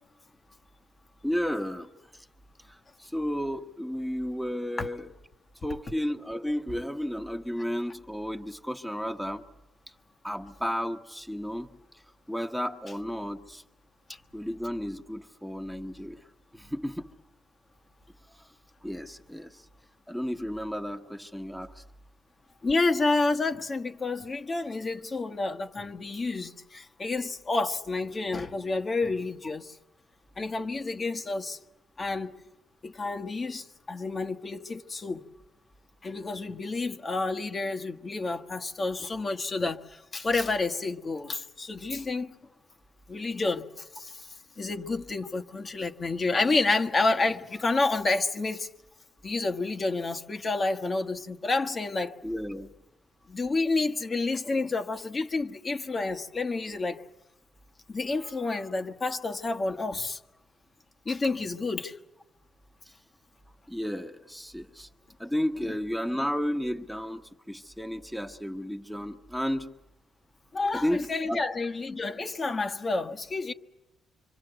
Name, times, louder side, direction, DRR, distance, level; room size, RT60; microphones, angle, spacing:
voice 1, 1.2-1.9 2.7-5.1 5.6-9.4 10.2-11.7 12.3-13.6 14.3-16.2 16.5-17.1 18.8-19.6 20.1-21.8 52.2-52.7 63.7-64.9 65.2-67.2 67.5-69.7 70.7-71.0 71.3-71.4, equal, ahead, 1.3 m, -32 dB
voice 2, 22.6-29.7 30.4-31.6 32.0-32.4 32.8-35.2 36.0-42.3 43.1-48.7 49.2-52.1 53.3-57.0 57.9-60.2 61.0-62.0 65.6-65.7 70.5-73.5, left 3 dB, 35° left, 1.3 m, -29 dB
25.5 x 25.5 x 8.0 m
cardioid pair, 90°, 0 cm